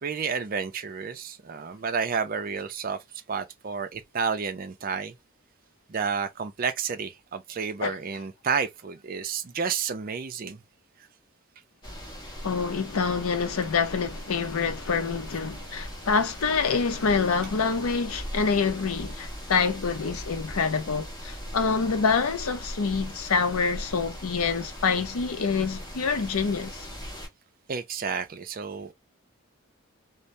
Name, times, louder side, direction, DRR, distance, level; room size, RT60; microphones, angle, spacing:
voice 1, 0.0-5.2 5.9-10.6 27.7-28.9, right 6 dB, 40° right, 0.4 m, -31 dB
sound 1, 11.8-27.3, equal, 20° left, 1.1 m, -40 dB
voice 2, 12.4-26.9, left 5 dB, 80° left, 0.6 m, -26 dB
2.6 x 2.1 x 3.1 m
head